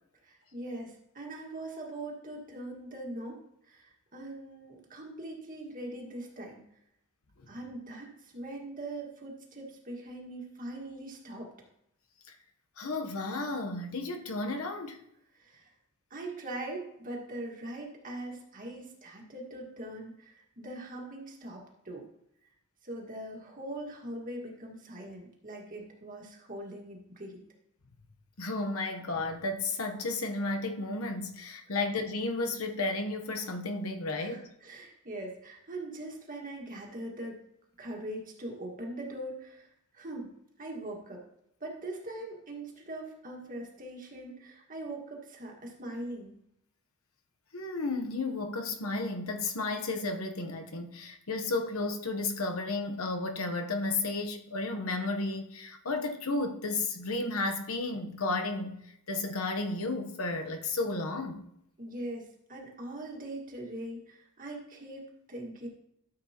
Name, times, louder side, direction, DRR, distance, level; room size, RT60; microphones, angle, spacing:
voice 1, 0.2-6.6 7.5-11.5 15.3-15.7 16.1-22.1 22.8-27.4 34.1-37.4 37.8-39.7 39.9-40.3 40.6-41.2 41.6-46.3 61.8-65.7, right 1 dB, 35° right, 1.8 m, -41 dB
voice 2, 12.8-15.0 28.4-34.5 47.5-61.5, left 3 dB, 70° left, 1.0 m, -33 dB
13.0 x 7.3 x 2.9 m
head